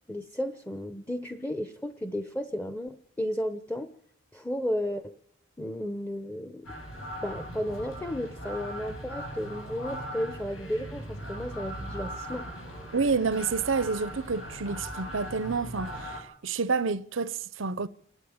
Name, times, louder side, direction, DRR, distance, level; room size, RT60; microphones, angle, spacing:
voice 1, 0.1-3.9 4.3-5.2 5.6-6.7 7.2-12.5, equal, 10° left, 0.8 m, -33 dB
sound 1, 6.6-16.2, equal, 90° left, 7.1 m, -39 dB
voice 2, 12.9-17.9, right 4 dB, 80° right, 0.8 m, -29 dB
28.5 x 12.0 x 8.7 m
head